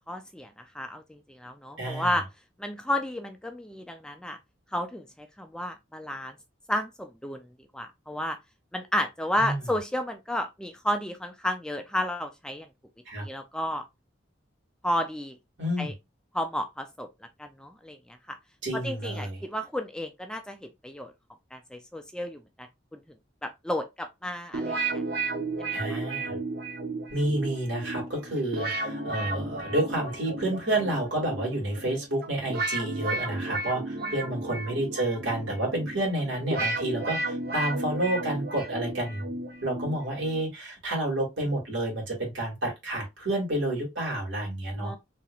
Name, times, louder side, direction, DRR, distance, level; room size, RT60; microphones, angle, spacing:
voice 1, 0.1-2.2 2.6-4.4 4.7-6.3 6.7-7.4 7.7-8.4 8.7-12.7 13.2-13.8 14.8-15.3 15.8-15.9 16.3-17.1 17.4-18.4 18.7-21.1 21.5-22.7 22.9-23.0 23.4-25.0 25.6-26.0 34.0-34.1 44.8-45.0, left 1 dB, 5° left, 0.4 m, -32 dB
voice 2, 1.8-2.1 9.4-9.6 13.1-13.2 15.6-15.9 18.6-19.4 25.7-26.4 27.1-39.3 39.6-45.0, right 1 dB, 85° right, 2.4 m, -29 dB
sound 1, 24.5-40.5, right 2 dB, 55° right, 0.8 m, -33 dB
4.2 x 2.9 x 2.4 m
head